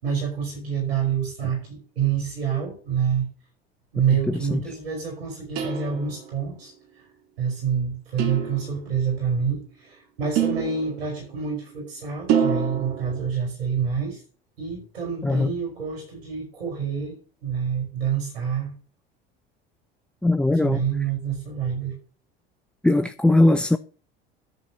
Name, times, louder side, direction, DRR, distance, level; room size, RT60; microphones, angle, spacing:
voice 1, 0.0-3.3 3.9-6.7 7.4-14.2 14.6-18.7 20.6-22.0, right 7 dB, 85° right, 5.2 m, -27 dB
voice 2, 4.3-4.6 15.2-15.5 20.2-20.8 22.8-23.8, left 2 dB, 5° left, 0.4 m, -20 dB
sound 1, 5.6-6.4 8.2-9.0 10.3-11.4 12.3-13.3, right 7 dB, 55° right, 2.0 m, -27 dB
10.5 x 4.2 x 7.2 m
hypercardioid pair, 75°, 30 cm